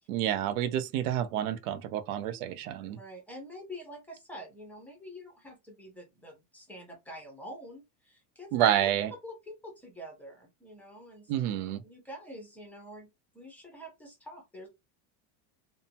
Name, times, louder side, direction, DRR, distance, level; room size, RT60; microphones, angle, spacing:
voice 1, 0.1-3.0 8.5-9.1 11.3-11.8, right 11 dB, 70° right, 0.7 m, -29 dB
voice 2, 2.9-8.6 8.8-8.9 9.2-11.3 11.8-13.1 13.3-14.7, equal, 5° left, 0.6 m, -46 dB
2.7 x 2.2 x 2.7 m
supercardioid pair, 160°, 46 cm